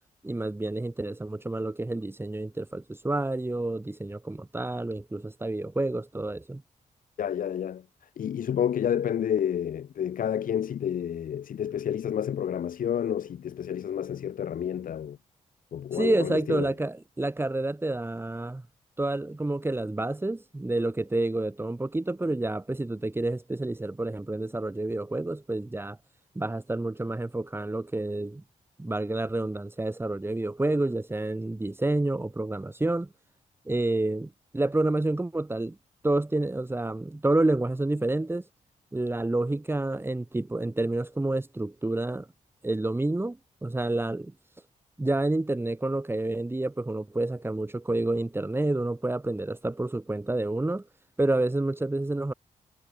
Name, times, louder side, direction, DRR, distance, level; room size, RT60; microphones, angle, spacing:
voice 1, 0.2-6.6 15.9-18.6 19.0-26.0 26.3-28.4 28.8-33.1 33.6-35.8 36.0-38.5 38.9-42.3 42.6-44.3 45.0-50.8 51.2-52.3, right 2 dB, 15° right, 5.1 m, -29 dB
voice 2, 7.2-7.8 8.2-15.2 15.7-16.7, left 9 dB, 75° left, 4.7 m, -29 dB
cardioid pair, 85°, 14 cm